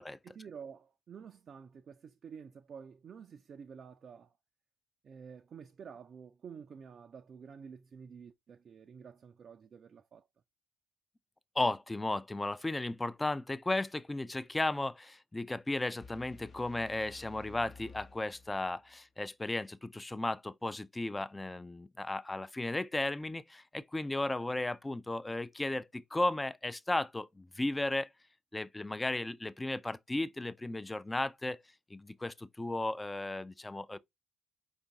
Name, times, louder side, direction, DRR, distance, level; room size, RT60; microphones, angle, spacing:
voice 1, 0.0-4.3 5.0-10.3, right 6 dB, 50° right, 0.3 m, -50 dB
voice 2, 11.6-28.1 28.5-31.6 31.9-34.0, left 2 dB, 15° left, 0.4 m, -35 dB
sound 1, 16.0-19.0, left 4 dB, 45° left, 0.7 m, -54 dB
5.1 x 2.5 x 3.2 m
figure-of-eight pair, 45°, 0 cm